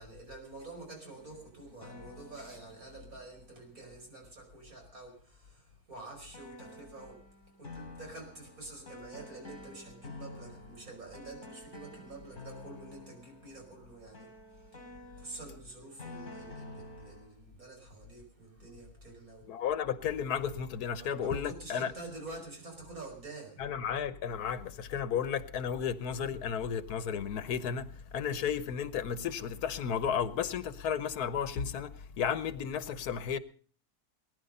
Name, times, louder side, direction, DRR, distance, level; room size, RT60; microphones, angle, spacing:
voice 1, 0.0-14.8 15.2-19.6 21.0-23.6, right 2 dB, 65° right, 5.7 m, -48 dB
sound 1, 1.1-4.0 6.3-17.4, left 2 dB, 50° left, 3.4 m, -50 dB
voice 2, 19.5-21.9 23.6-33.4, left 7 dB, 85° left, 1.5 m, -33 dB
20.5 x 11.0 x 5.4 m
omnidirectional pair, 1.6 m